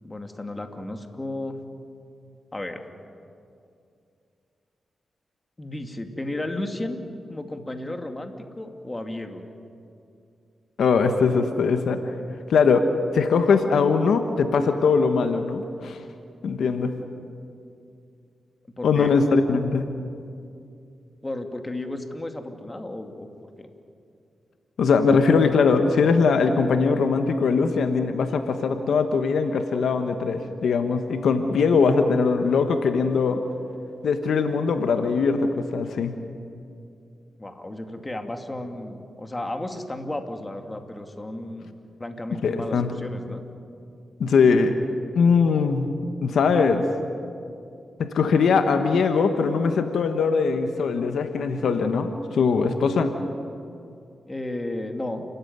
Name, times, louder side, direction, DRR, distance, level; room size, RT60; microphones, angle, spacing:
voice 1, 0.0-1.6 2.5-2.8 5.6-7.0 7.3-9.4 18.8-19.2 21.2-23.3 23.6-23.7 37.4-41.7 42.0-43.4 54.3-55.2, left 1 dB, 20° left, 5 dB, 2.6 m, -33 dB
voice 2, 10.8-12.1 12.5-12.9 13.1-16.0 16.4-16.9 18.8-19.9 24.8-33.4 34.0-36.1 42.4-42.9 44.2-44.7 45.1-45.9 46.2-46.8 48.0-53.1, left 5 dB, 80° left, 7 dB, 1.4 m, -21 dB
29.5 x 14.5 x 9.6 m, 2.5 s
cardioid pair, 60°, 0 cm